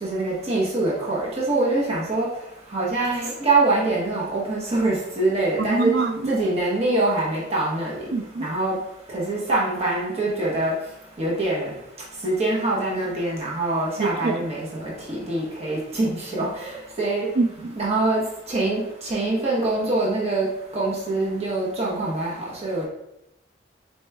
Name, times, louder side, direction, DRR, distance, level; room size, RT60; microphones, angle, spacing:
voice 1, 0.0-2.3 2.7-5.9 6.3-7.9 8.4-8.8 9.1-10.7 11.2-11.7 12.2-17.3 17.8-18.2 18.5-20.5 20.7-22.3 22.6-22.8, right 2 dB, 35° right, -6 dB, 1.0 m, -24 dB
voice 2, 5.6-6.3 8.1-8.5 14.0-14.4 17.4-17.8, right 3 dB, 60° right, 8 dB, 0.4 m, -25 dB
4.3 x 3.0 x 3.4 m, 0.86 s
head